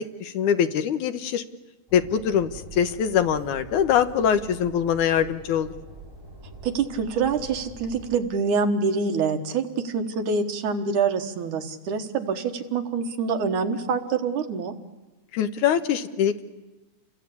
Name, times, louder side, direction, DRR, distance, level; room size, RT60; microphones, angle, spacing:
voice 1, 0.0-1.4 1.9-5.7 15.3-16.4, left 8 dB, 80° left, 9 dB, 2.6 m, -23 dB
Train, 1.9-8.2, right 3 dB, 5° right, 3.8 m, -44 dB
voice 2, 6.6-14.7, right 5 dB, 80° right, 5 dB, 3.0 m, -26 dB
29.5 x 23.5 x 8.5 m, 1.1 s
omnidirectional pair, 3.5 m